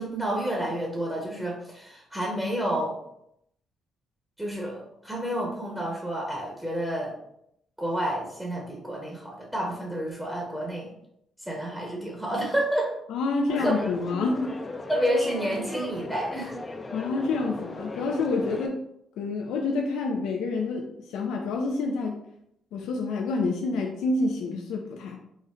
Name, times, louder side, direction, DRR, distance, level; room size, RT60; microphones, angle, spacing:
voice 1, 0.0-2.9 4.4-7.1 7.8-10.9 11.4-13.0 13.6-13.9 14.9-16.6, right 1 dB, 5° right, -2 dB, 0.9 m, -29 dB
voice 2, 13.1-14.6 16.9-18.8 19.2-22.2 22.7-25.2, left 3 dB, 85° left, 1 dB, 0.4 m, -28 dB
sound 1, 13.5-18.7, left 2 dB, 25° left, 0.4 m, -37 dB
4.0 x 2.1 x 3.7 m, 0.77 s
cardioid pair, 90°, 0 cm